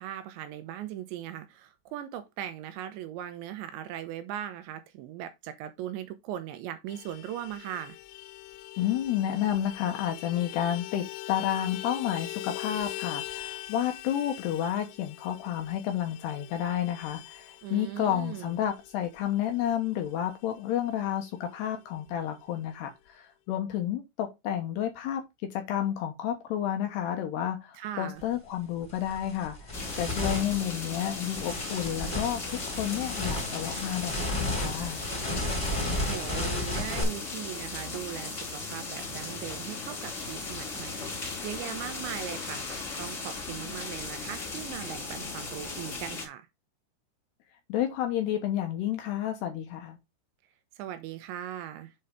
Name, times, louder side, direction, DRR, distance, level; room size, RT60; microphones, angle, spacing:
voice 1, 0.0-8.0 17.6-18.6 27.7-28.2 35.9-46.5 50.8-51.9, right 11 dB, 80° right, 2.8 m, -39 dB
Vehicle horn car horn honking, 6.9-20.8 21.1-21.2 21.5-21.7 21.9-22.6, left 17 dB, 90° left, 3.3 m, -42 dB
voice 2, 8.8-25.2 25.5-35.0 47.7-50.0, left 11 dB, 70° left, 2.7 m, -31 dB
sound 1, 28.2-28.3 28.8-37.0, left 1 dB, 10° left, 1.9 m, -33 dB
sound 2, 29.7-46.2, left 3 dB, 25° left, 1.9 m, -37 dB
7.6 x 5.6 x 3.6 m
omnidirectional pair, 5.8 m